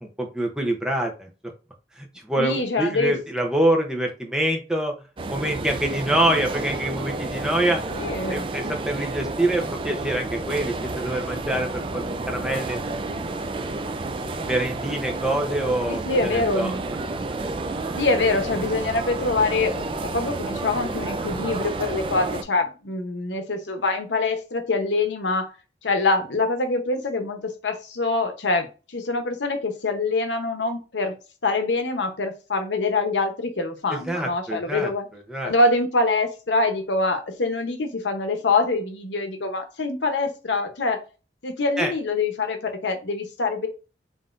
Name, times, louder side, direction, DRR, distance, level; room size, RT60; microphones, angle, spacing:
voice 1, 0.0-1.3 2.0-4.9 5.3-8.0 8.3-12.8 14.4-16.8 33.9-35.5 41.8-41.9, right 1 dB, 5° right, 2 dB, 0.7 m, -25 dB
voice 2, 2.4-3.2 7.9-8.4 15.9-16.8 18.0-25.5 25.8-31.2 31.4-35.1 35.4-41.0 41.4-43.7, left 3 dB, 90° left, 6 dB, 0.9 m, -25 dB
sound 1, 5.2-22.4, right 2 dB, 30° right, 0.3 m, -30 dB
5.4 x 2.7 x 2.5 m, 0.32 s
head